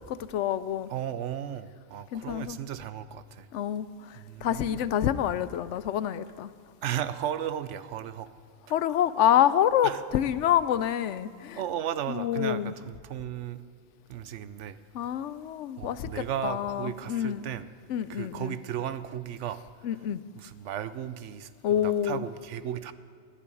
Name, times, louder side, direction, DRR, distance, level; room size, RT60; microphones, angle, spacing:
voice 1, 0.1-0.9 2.1-2.6 3.5-6.5 8.7-11.6 12.1-12.7 14.9-17.4 17.9-18.6 19.8-20.2 21.6-22.2, left 10 dB, 85° left, 16 dB, 0.9 m, -27 dB
voice 2, 0.9-3.5 4.1-4.9 6.8-8.3 9.8-10.0 11.6-13.6 14.1-14.8 15.8-17.7 18.1-19.6 20.4-22.9, right 10 dB, 90° right, 14 dB, 1.0 m, -35 dB
11.5 x 10.0 x 9.8 m, 2.3 s
omnidirectional pair, 1.2 m